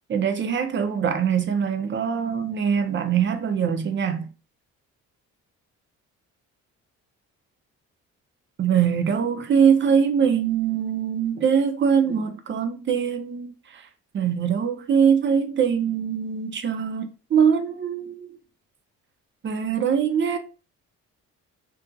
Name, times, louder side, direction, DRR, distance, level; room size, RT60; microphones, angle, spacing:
voice 1, 0.1-4.3 8.6-13.9 14.1-18.4 19.4-20.4, right 7 dB, 40° right, 0.5 m, -23 dB
2.6 x 2.5 x 2.2 m
cardioid pair, 90°, 30 cm